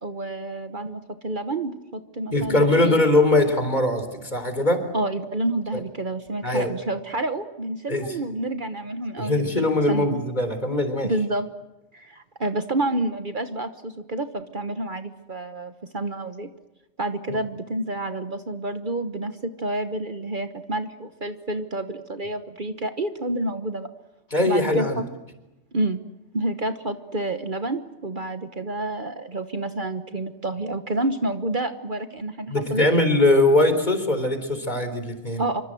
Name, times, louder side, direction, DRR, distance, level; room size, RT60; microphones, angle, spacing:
voice 1, 0.0-3.0 4.9-10.2 11.0-11.5 11.9-16.5 17.0-23.9 24.5-25.0 25.7-26.0 26.3-32.9 35.4-35.6, right 2 dB, 45° right, 9 dB, 1.3 m, -29 dB
voice 2, 2.3-4.9 6.4-6.7 7.9-8.1 9.2-11.1 17.3-17.4 24.3-25.0 32.5-35.5, left 2 dB, 40° left, 8 dB, 4.0 m, -21 dB
26.5 x 24.5 x 7.8 m, 0.99 s
omnidirectional pair, 1.2 m